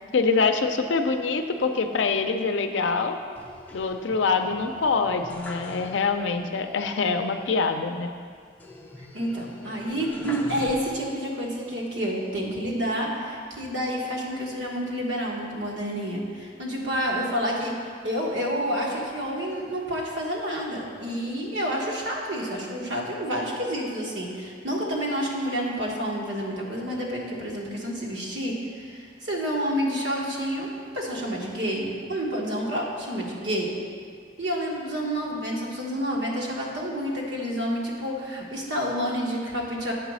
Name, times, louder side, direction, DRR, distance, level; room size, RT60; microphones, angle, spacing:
voice 1, 0.1-3.2 3.7-8.1, left 4 dB, 75° left, 7 dB, 0.5 m, -25 dB
sound 1, 3.4-6.4 6.7-6.8 8.6-11.3 11.9-12.7, left 1 dB, 10° left, 0.7 m, -43 dB
voice 2, 9.0-17.7 18.0-33.7 34.4-39.9, equal, 75° right, -3 dB, 1.4 m, -29 dB
8.0 x 4.0 x 6.1 m, 2.1 s
head